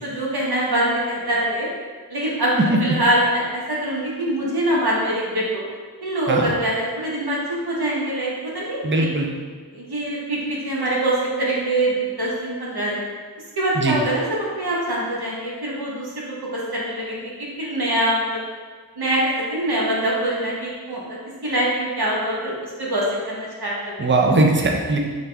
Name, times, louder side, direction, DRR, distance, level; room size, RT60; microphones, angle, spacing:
voice 1, 0.0-1.7 2.1-5.6 6.0-9.1 9.7-13.0 13.6-16.2 16.5-18.4 19.0-21.2 21.4-24.0, right 1 dB, 75° right, -5 dB, 1.1 m, -24 dB
voice 2, 8.8-9.3 13.7-14.0 24.0-25.0, right 2 dB, 30° right, 1 dB, 0.5 m, -19 dB
5.7 x 2.4 x 3.3 m, 1.5 s
wide cardioid pair, 45°, 39 cm